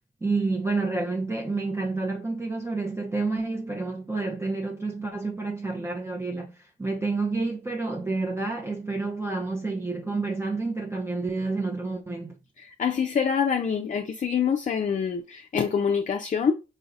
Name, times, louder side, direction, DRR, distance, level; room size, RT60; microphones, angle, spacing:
voice 1, 0.2-12.4, right 3 dB, 15° right, 0.6 m, -29 dB
voice 2, 12.6-16.5, left 7 dB, 40° left, 0.5 m, -25 dB
3.9 x 3.2 x 2.4 m
supercardioid pair, 50°, 19 cm